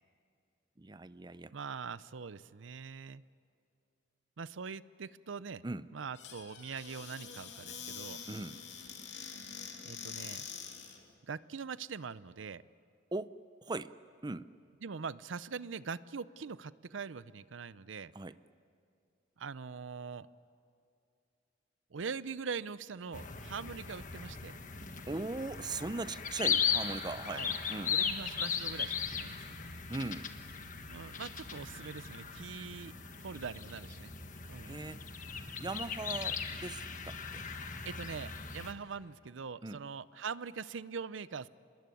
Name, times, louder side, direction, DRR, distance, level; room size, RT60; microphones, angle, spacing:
voice 1, 0.8-1.5 5.6-5.9 8.3-8.6 13.1-13.9 14.2-14.5 18.1-18.3 25.1-27.9 29.9-30.3 34.7-35.0 35.6-37.4 39.6-39.8, right 3 dB, 25° right, 14 dB, 0.6 m, -39 dB
voice 2, 1.5-3.2 4.4-5.6 5.9-8.2 9.8-10.4 11.2-12.6 14.8-18.1 19.4-20.3 21.9-24.6 27.3-27.5 27.9-29.7 30.9-32.9 33.2-34.1 34.5-34.8 37.8-41.5, right 5 dB, 90° right, 17 dB, 0.6 m, -42 dB
Squeak / Cupboard open or close, 6.1-11.0, left 7 dB, 65° left, 2.9 m, -45 dB
sound 1, 23.1-38.7, left 6 dB, 45° left, 1.5 m, -38 dB
25.5 x 21.0 x 9.3 m, 2.5 s
head